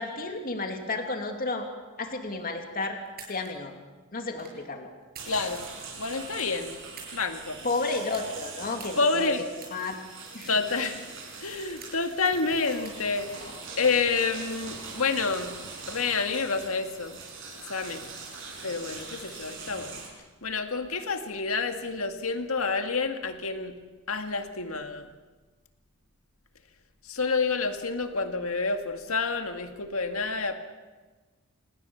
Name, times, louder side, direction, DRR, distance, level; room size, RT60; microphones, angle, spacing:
voice 1, 0.0-1.7 2.0-3.0 3.3-3.7 4.1-4.9 7.6-9.3 9.7-9.9 10.3-10.5, left 3 dB, 40° left, 4 dB, 2.8 m, -32 dB
sound 1, 3.1-3.5 4.2-4.6 5.0-5.7 6.0-7.2 8.0-8.3 8.8-9.1 9.6-9.8 10.4-10.7 11.1-12.1 12.7-13.0, right 6 dB, 45° right, 7.0 m, -47 dB
sound 2, 5.2-20.1, right 4 dB, 60° right, 7.0 m, -42 dB
voice 2, 5.3-5.7 6.0-6.8 7.1-7.6 9.0-9.4 10.5-11.1 11.4-15.5 15.9-17.2 17.5-18.1 18.6-20.0 20.4-23.8 24.1-25.1 27.0-30.6, left 4 dB, 75° left, 6 dB, 2.1 m, -29 dB
27.5 x 19.5 x 7.1 m, 1.3 s
head